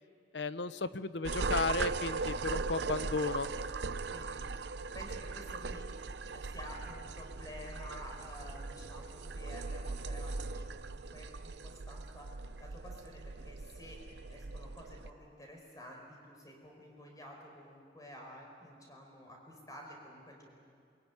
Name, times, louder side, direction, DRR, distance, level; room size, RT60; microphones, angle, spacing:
voice 1, 0.3-3.5, left 4 dB, 75° left, 14 dB, 0.8 m, -34 dB
sound 1, 1.2-15.1, right 4 dB, 70° right, 0.6 m, -39 dB
voice 2, 4.1-4.5 4.9-5.9 6.3-20.5, equal, 20° left, 1 dB, 4.8 m, -51 dB
22.5 x 22.0 x 9.5 m, 2.3 s
head